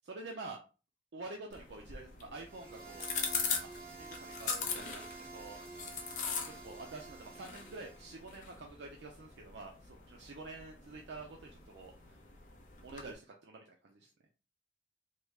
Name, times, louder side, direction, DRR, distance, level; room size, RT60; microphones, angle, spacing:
voice 1, 0.1-0.6 1.1-3.1 3.9-5.6 6.4-11.9 12.8-14.1, right 3 dB, 85° right, 1 dB, 0.5 m, -48 dB
sound 1, 1.5-13.2, left 5 dB, 45° left, 0.5 m, -42 dB
sound 2, 2.4-8.2, right 3 dB, 65° right, 1.5 m, -49 dB
3.0 x 2.3 x 3.2 m, 0.34 s
head